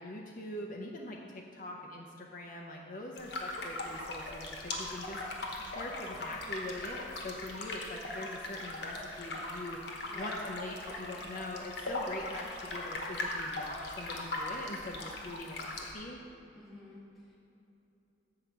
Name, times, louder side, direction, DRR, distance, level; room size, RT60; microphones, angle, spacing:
voice 1, 0.0-5.2 5.7-9.8 10.1-16.2, left 1 dB, 45° left, 0 dB, 0.5 m, -43 dB
sound 1, 3.2-15.9, left 2 dB, 65° left, 1.1 m, -39 dB
voice 2, 5.1-5.5 10.1-10.4 16.5-17.4, left 1 dB, ahead, -6 dB, 1.6 m, -51 dB
7.7 x 4.7 x 6.5 m, 2.8 s
head